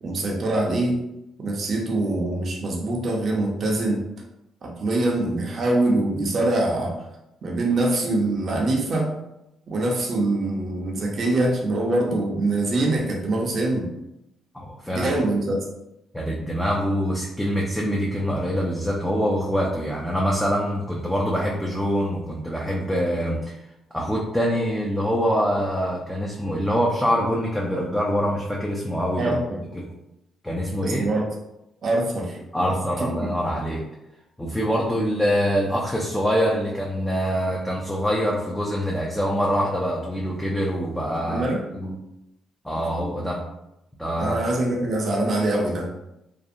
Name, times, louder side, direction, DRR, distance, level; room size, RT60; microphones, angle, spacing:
voice 1, 0.0-1.0 1.4-4.0 4.6-6.9 7.4-9.1 9.7-13.9 14.9-15.7 29.2-29.6 30.8-31.3 31.8-32.4 33.0-33.3 41.3-41.6 44.2-45.9, right 2 dB, 50° right, -2 dB, 0.5 m, -24 dB
voice 2, 14.5-15.1 16.1-23.6 23.9-29.3 29.7-29.9 30.4-31.0 32.5-33.8 34.4-41.4 41.7-42.0 42.6-43.4 44.0-44.4, equal, 5° left, -3 dB, 0.4 m, -24 dB
2.5 x 2.0 x 2.6 m, 0.88 s
cardioid pair, 90°, 0 cm